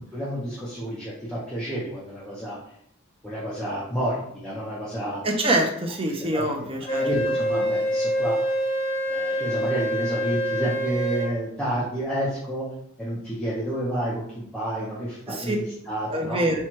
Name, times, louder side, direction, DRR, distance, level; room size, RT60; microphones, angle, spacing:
voice 1, 0.1-2.6 3.2-5.2 6.3-6.5 6.9-8.4 9.1-12.7 13.0-16.4, equal, 5° left, -9 dB, 0.8 m, -30 dB
voice 2, 5.2-7.3 15.3-15.6 16.1-16.6, right 1 dB, 25° right, 2 dB, 0.6 m, -25 dB
Wind instrument woodwind instrument, 6.9-11.3, equal, 55° left, 1.5 m, -26 dB
4.4 x 2.4 x 4.5 m, 0.69 s
head